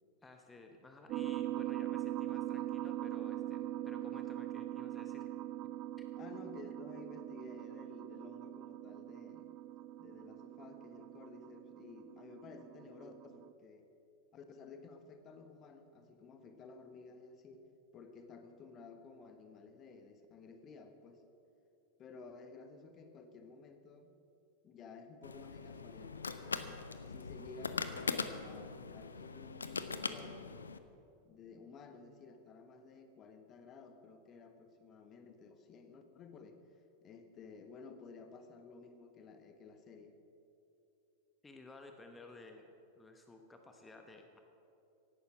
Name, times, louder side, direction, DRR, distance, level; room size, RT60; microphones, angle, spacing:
voice 1, 0.2-5.3 41.4-42.6 43.0-44.4, left 2 dB, 10° left, 4 dB, 1.1 m, -55 dB
sound 1, 1.1-13.5, right 13 dB, 35° right, 0.3 m, -42 dB
voice 2, 6.2-9.5 10.0-13.9 14.3-17.6 17.9-21.2 22.0-24.1 24.6-26.7 27.1-30.6 31.2-36.6 37.0-40.2, left 4 dB, 30° left, 7 dB, 1.3 m, -54 dB
sound 2, 25.2-30.8, left 4 dB, 75° left, 0.7 m, -41 dB
16.5 x 11.5 x 6.0 m, 2.8 s
figure-of-eight pair, 90°, 0 cm